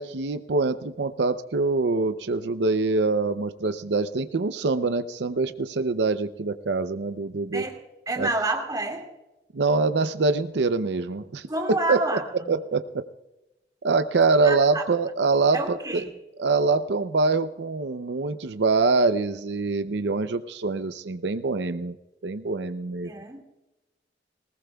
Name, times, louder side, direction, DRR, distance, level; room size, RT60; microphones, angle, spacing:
voice 1, 0.0-7.6 8.2-8.3 9.5-12.2 12.5-13.0 13.8-16.0 16.4-22.0 22.2-23.1, right 3 dB, 80° right, 10 dB, 0.6 m, -24 dB
voice 2, 8.1-9.1 11.5-12.2 14.4-14.8 15.5-16.1 23.0-23.4, right 2 dB, 20° right, 2 dB, 2.2 m, -28 dB
20.0 x 20.0 x 2.3 m, 1.0 s
head